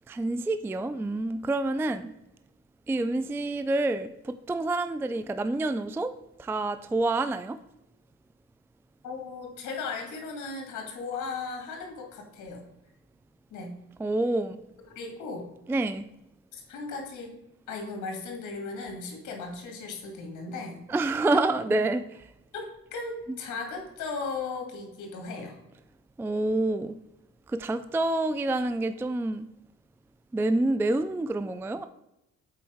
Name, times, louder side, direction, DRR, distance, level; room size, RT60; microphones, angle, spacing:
voice 1, 0.1-2.1 2.9-6.1 6.4-7.6 14.0-14.6 15.7-16.1 20.9-22.0 26.2-26.9 27.5-29.5 30.3-31.9, right 2 dB, 10° right, 11 dB, 0.3 m, -27 dB
voice 2, 9.0-12.6 13.5-13.8 14.9-15.5 16.5-17.3 17.7-20.8 21.3-21.4 21.7-21.8 22.5-25.6, left 4 dB, 80° left, 2 dB, 1.9 m, -37 dB
7.0 x 4.4 x 4.9 m, 0.89 s
cardioid pair, 90°, 30 cm